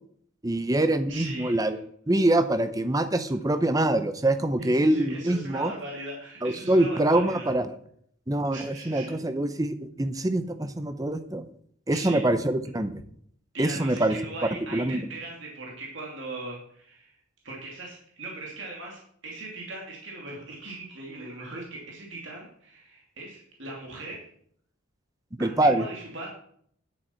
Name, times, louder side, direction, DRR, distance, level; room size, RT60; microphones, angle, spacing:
voice 1, 0.4-1.8 2.1-5.7 6.4-7.7 8.3-11.5 11.9-12.9 13.6-14.1 14.7-15.0 25.4-25.9, right 1 dB, 15° right, 10 dB, 0.7 m, -24 dB
voice 2, 1.1-1.8 4.6-7.5 8.5-9.2 11.9-12.2 13.5-17.2 17.4-24.2 25.4-26.3, right 2 dB, 60° right, -2 dB, 2.5 m, -39 dB
10.5 x 8.3 x 4.5 m, 0.64 s
head